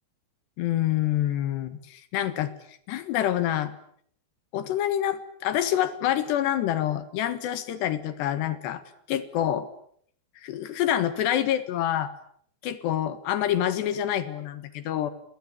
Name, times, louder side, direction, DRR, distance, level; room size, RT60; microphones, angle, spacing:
voice 1, 0.6-2.5 2.9-3.7 4.5-8.8 9.1-9.7 10.4-12.1 12.6-15.1, left 11 dB, 85° left, 12 dB, 3.7 m, -27 dB
29.5 x 23.0 x 8.6 m, 0.66 s
omnidirectional pair, 4.8 m